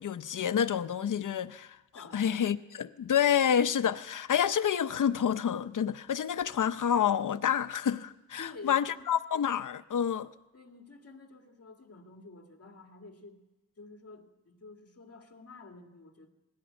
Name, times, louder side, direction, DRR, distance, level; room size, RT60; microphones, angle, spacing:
voice 1, 0.0-1.8 2.1-10.3, left 8 dB, 85° left, 0.7 m, -28 dB
voice 2, 1.9-2.4 8.4-9.1 10.5-13.4 13.8-16.3, left 3 dB, 50° left, 2.3 m, -49 dB
20.0 x 16.0 x 8.9 m
wide cardioid pair, 125°, 30 cm